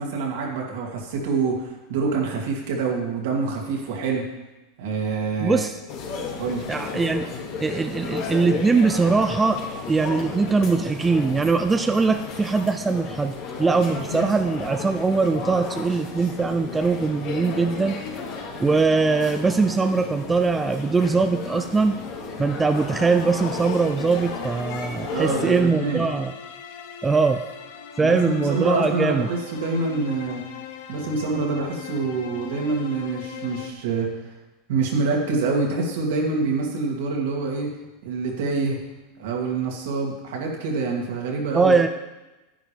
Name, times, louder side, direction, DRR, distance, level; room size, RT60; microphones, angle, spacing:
voice 1, 0.0-4.3 4.8-5.6 6.4-6.6 25.1-26.1 28.0-30.5 30.9-34.1 34.7-37.7 38.0-38.8 39.2-41.7, right 4 dB, 75° right, -1 dB, 2.4 m, -26 dB
voice 2, 5.4-5.8 6.7-7.2 7.6-9.6 9.9-18.0 18.6-22.0 22.4-26.3 27.0-27.4 28.0-29.3 41.5-41.9, right 4 dB, 15° right, 7 dB, 0.5 m, -21 dB
sound 1, 5.9-25.6, left 5 dB, 55° left, 2.2 m, -33 dB
sound 2, 23.5-33.7, left 9 dB, 80° left, 1.0 m, -40 dB
10.0 x 9.8 x 3.5 m, 1.1 s
supercardioid pair, 125°, 0 cm